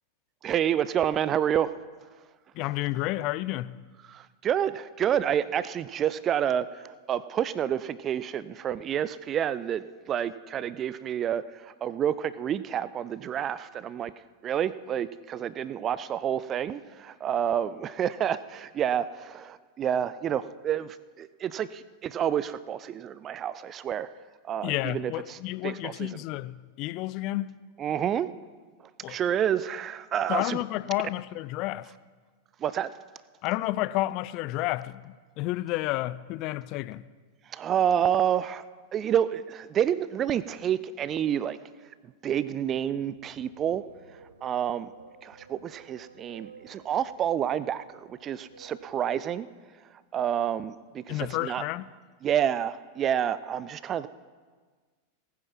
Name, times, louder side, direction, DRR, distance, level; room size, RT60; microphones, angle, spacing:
voice 1, 0.4-1.7 4.1-14.1 14.4-24.1 24.4-25.4 25.6-26.2 27.8-28.3 29.1-30.6 32.6-32.9 37.5-38.6 38.9-41.6 42.2-43.8 44.4-44.9 45.2-49.5 50.1-51.6 52.2-54.1, right 9 dB, 30° right, 0.5 m, -29 dB
voice 2, 2.5-3.8 24.6-27.6 29.0-29.2 30.3-31.9 33.4-37.1 51.1-51.9, left 17 dB, 40° left, 0.5 m, -31 dB
sound 1, 43.1-49.2, right 4 dB, 75° right, 1.2 m, -53 dB
18.5 x 9.5 x 6.0 m
figure-of-eight pair, 90°, 0 cm